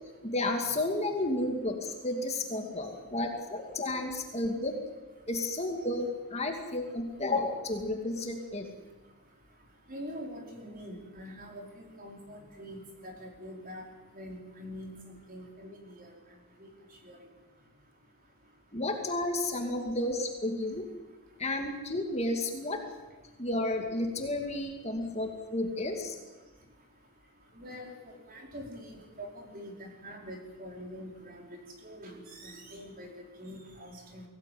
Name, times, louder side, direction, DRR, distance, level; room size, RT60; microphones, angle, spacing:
voice 1, 0.2-4.8 5.3-8.7 18.7-20.9 21.4-22.8 23.4-26.2, left 2 dB, 30° left, 3 dB, 2.5 m, -32 dB
voice 2, 9.9-13.8 14.1-14.9 15.3-15.8 17.1-17.2 27.6-27.9 28.3-31.5 31.8-33.1 33.4-34.2, equal, 40° right, 1 dB, 5.0 m, -44 dB
23.5 x 17.0 x 9.4 m, 1.2 s
head